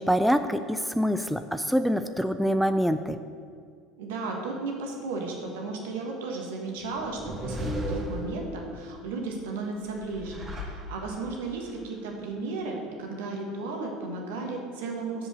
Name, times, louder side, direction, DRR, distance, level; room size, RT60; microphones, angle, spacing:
voice 1, 0.0-3.2, equal, ahead, 9 dB, 0.3 m, -25 dB
voice 2, 4.0-15.3, right 3 dB, 70° right, 1 dB, 1.4 m, -34 dB
sound 1, 6.8-8.8 9.9-11.4, equal, 30° right, 1.9 m, -35 dB
6.8 x 5.4 x 6.6 m, 2.1 s
figure-of-eight pair, 65°, 0 cm